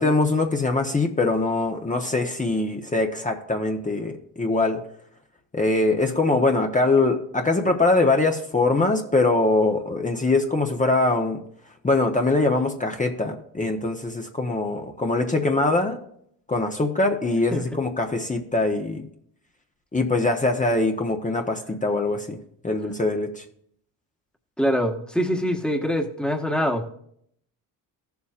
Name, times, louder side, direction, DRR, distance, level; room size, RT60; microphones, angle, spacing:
voice 1, 0.0-4.8 5.5-11.4 11.8-16.0 16.5-19.0 19.9-22.4 22.6-23.4, left 2 dB, 20° left, 3 dB, 1.0 m, -22 dB
voice 2, 24.6-26.9, equal, ahead, 3 dB, 1.4 m, -24 dB
15.0 x 7.1 x 2.5 m, 0.68 s
supercardioid pair, 70°, 43 cm